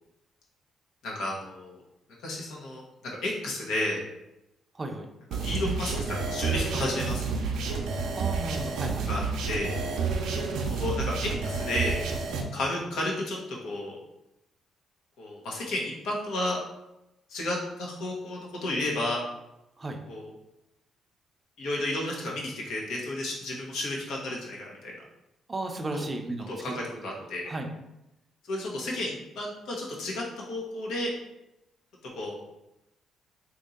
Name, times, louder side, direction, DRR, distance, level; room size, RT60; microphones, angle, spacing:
voice 1, 1.0-1.8 2.2-4.0 5.4-7.2 9.1-9.7 10.5-12.0 12.5-13.9 15.2-16.6 17.3-19.2 20.1-20.3 21.6-24.9 25.9-26.0 26.5-27.5 28.4-31.1 32.0-32.4, left 1 dB, 85° left, -2 dB, 0.9 m, -32 dB
sound 1, 5.3-12.4, right 4 dB, 85° right, 0.5 m, -30 dB
voice 2, 8.1-9.1 19.8-20.0 25.5-27.0 27.5-27.7, right 2 dB, 25° right, 3 dB, 0.5 m, -34 dB
3.0 x 2.6 x 3.7 m, 0.91 s
cardioid pair, 90°, 0 cm